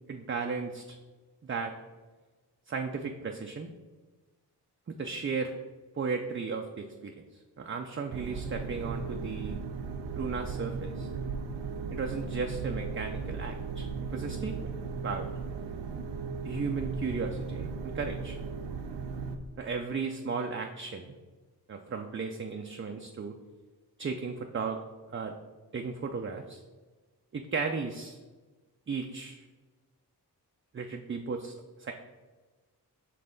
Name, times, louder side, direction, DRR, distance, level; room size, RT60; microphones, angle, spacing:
voice 1, 0.1-1.0 1.4-1.7 2.7-3.7 4.9-5.5 6.0-9.6 10.1-11.1 11.9-14.6 15.0-15.3 16.4-18.4 19.6-21.1 21.7-23.3 24.0-24.8 25.1-25.3 25.7-26.6 27.3-28.2 28.9-29.4 30.7-31.9, right 5 dB, 30° right, 3 dB, 0.5 m, -35 dB
sound 1, 8.1-19.4, right 4 dB, 90° right, 0.6 m, -36 dB
5.4 x 3.4 x 5.2 m, 1.3 s
cardioid pair, 55°, 42 cm